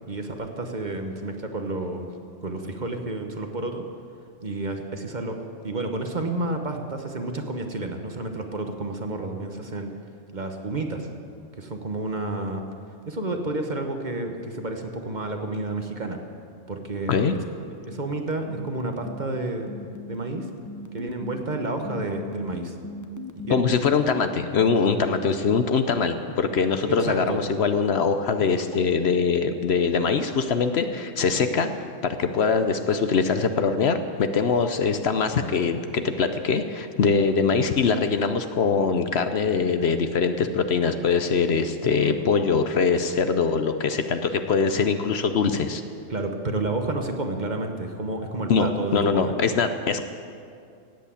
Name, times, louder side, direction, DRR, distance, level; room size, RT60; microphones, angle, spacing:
voice 1, 0.1-2.1 2.4-3.8 4.4-5.4 5.6-9.9 10.3-11.1 11.6-12.6 13.1-16.2 16.7-17.2 17.9-19.7 20.1-20.5 20.9-22.7 23.5-23.6 27.0-27.4 42.0-42.3 46.1-49.3, right 2 dB, 40° right, 4 dB, 1.2 m, -30 dB
sound 1, 17.8-23.8, left 2 dB, 20° left, 0.6 m, -38 dB
voice 2, 23.5-31.7 32.0-45.8 48.5-50.0, left 5 dB, 60° left, 8 dB, 0.9 m, -23 dB
17.0 x 8.3 x 8.4 m, 2.4 s
omnidirectional pair, 1.3 m